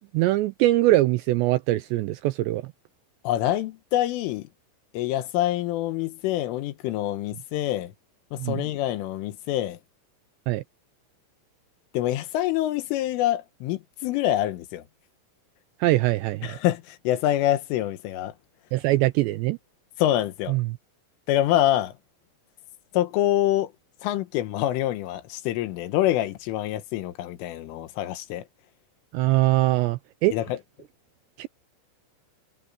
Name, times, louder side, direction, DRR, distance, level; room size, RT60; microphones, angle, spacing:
voice 1, 0.1-2.6 8.4-8.7 10.5-10.6 15.8-16.6 18.7-19.6 20.5-20.8 29.1-30.4 31.4-31.5, right 17 dB, 85° right, 2.5 m, -22 dB
voice 2, 3.3-4.5 4.9-7.9 8.3-9.8 11.9-14.8 16.4-18.3 20.0-20.6 21.3-21.9 22.9-23.7 24.0-28.4 30.3-30.6, left 13 dB, 90° left, 3.8 m, -26 dB
omnidirectional pair, 5.6 m